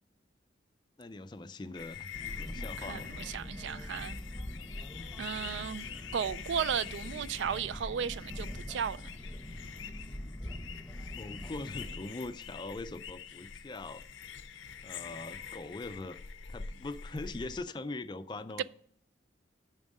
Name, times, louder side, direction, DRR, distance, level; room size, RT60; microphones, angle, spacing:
voice 1, 1.0-2.1 2.4-3.2 11.2-14.1 14.8-16.2 16.5-18.6, left 2 dB, 25° left, 0.3 m, -41 dB
sound 1, 1.7-17.6, left 7 dB, 80° left, 0.6 m, -45 dB
sound 2, 2.1-12.0, equal, ahead, 0.9 m, -44 dB
voice 2, 2.6-4.2 5.2-9.0 18.6-18.7, right 7 dB, 70° right, 0.3 m, -35 dB
7.2 x 6.1 x 5.3 m
head